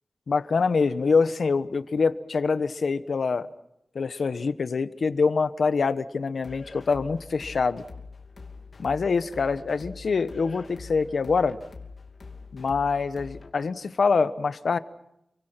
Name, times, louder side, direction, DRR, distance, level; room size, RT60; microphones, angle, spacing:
voice 1, 0.3-3.5 3.9-7.8 8.8-11.6 12.5-14.8, left 4 dB, 80° left, 12 dB, 1.2 m, -25 dB
sound 1, 6.4-13.5, left 4 dB, 65° left, 2.7 m, -44 dB
30.0 x 23.5 x 5.9 m, 0.82 s
wide cardioid pair, 100°, 0 cm